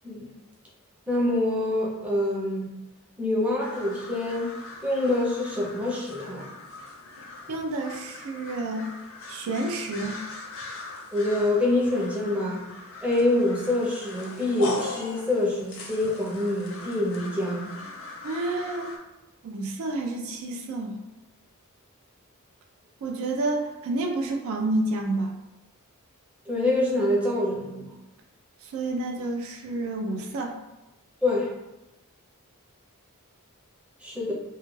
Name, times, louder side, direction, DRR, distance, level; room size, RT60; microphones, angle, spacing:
voice 1, 1.1-2.7 3.2-4.5 4.8-6.5 11.1-12.7 13.0-17.7 26.5-27.9 31.2-31.5 34.0-34.3, left 1 dB, 5° right, -5 dB, 0.5 m, -26 dB
sound 1, 3.6-19.0, left 3 dB, 60° left, 0.5 m, -40 dB
voice 2, 7.5-8.9 9.3-10.2 18.2-18.9 19.4-21.0 23.0-25.3 28.6-30.6, right 2 dB, 65° right, 2 dB, 0.3 m, -29 dB
2.3 x 2.2 x 3.0 m, 0.98 s
head